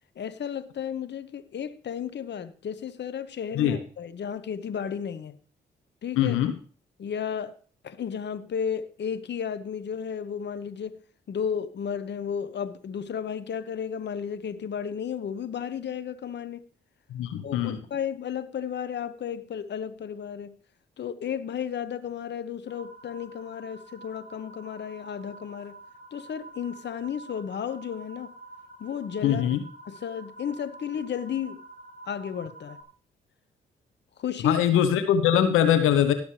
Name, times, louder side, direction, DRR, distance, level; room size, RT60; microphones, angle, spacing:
voice 1, 0.2-5.3 6.0-6.4 7.0-7.6 7.8-11.0 11.3-16.6 17.4-20.5 21.0-25.8 26.1-28.3 28.8-29.5 29.9-31.6 32.1-32.8 34.2-34.6, left 8 dB, 55° left, 13 dB, 1.0 m, -33 dB
voice 2, 6.2-6.5 17.1-17.8 29.2-29.6 34.4-36.1, left 9 dB, 80° left, 9 dB, 1.0 m, -22 dB
sound 1, 22.7-32.8, right 2 dB, 40° right, 3.0 m, -48 dB
17.5 x 7.1 x 3.2 m, 0.43 s
supercardioid pair, 45°, 21 cm